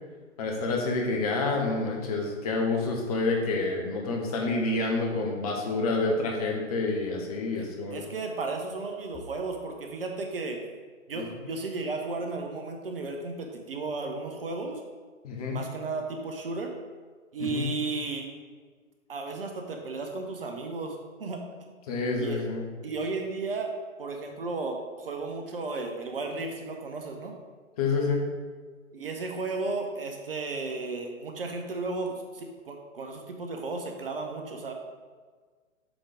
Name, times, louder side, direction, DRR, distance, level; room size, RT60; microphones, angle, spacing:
voice 1, 0.4-8.0 11.1-11.3 15.2-15.6 17.4-17.6 21.9-22.6 27.8-28.2, left 3 dB, 30° left, 0 dB, 1.0 m, -28 dB
voice 2, 5.1-5.4 7.5-10.6 11.1-14.8 15.5-16.7 17.3-18.3 19.1-21.4 22.2-22.4 22.8-23.7 24.0-27.3 28.9-34.7, right 3 dB, 45° right, 3 dB, 0.8 m, -34 dB
7.0 x 3.6 x 5.0 m, 1.5 s
figure-of-eight pair, 125°, 40 cm